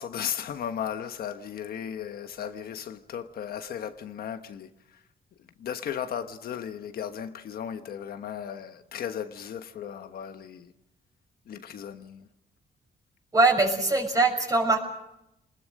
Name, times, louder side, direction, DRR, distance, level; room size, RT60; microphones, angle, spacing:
voice 1, 0.0-4.7 5.6-10.7 11.5-12.3, left 8 dB, 70° left, 1.3 m, -36 dB
voice 2, 13.3-14.8, right 3 dB, 20° right, 6.4 m, -22 dB
28.5 x 20.5 x 6.5 m
cardioid pair, 125°, 16 cm